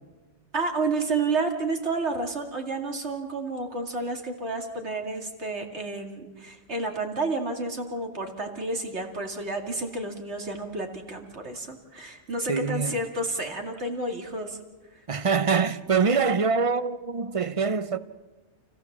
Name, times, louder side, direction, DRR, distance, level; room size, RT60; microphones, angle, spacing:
voice 1, 0.5-14.6, right 3 dB, 70° right, 2.7 m, -30 dB
voice 2, 12.5-13.0 15.1-18.0, right 5 dB, 35° right, 0.7 m, -24 dB
29.5 x 15.5 x 7.4 m
omnidirectional pair, 1.2 m